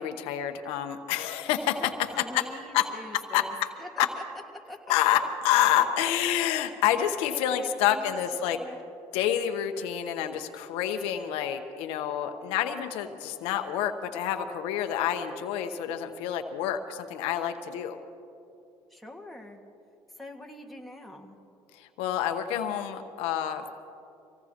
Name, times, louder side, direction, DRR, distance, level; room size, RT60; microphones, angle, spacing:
voice 1, 0.0-1.9 2.3-2.4 2.7-2.9 3.3-3.7 4.0-4.1 4.9-8.6 9.1-18.0 21.7-23.7, left 10 dB, 85° left, 6 dB, 0.9 m, -28 dB
voice 2, 2.1-4.2 4.5-4.9 7.5-8.1 8.5-8.8 18.9-19.6 20.2-21.4, left 1 dB, ahead, 0 dB, 1.8 m, -44 dB
25.0 x 17.5 x 3.0 m, 2.6 s
supercardioid pair, 90°, 10 cm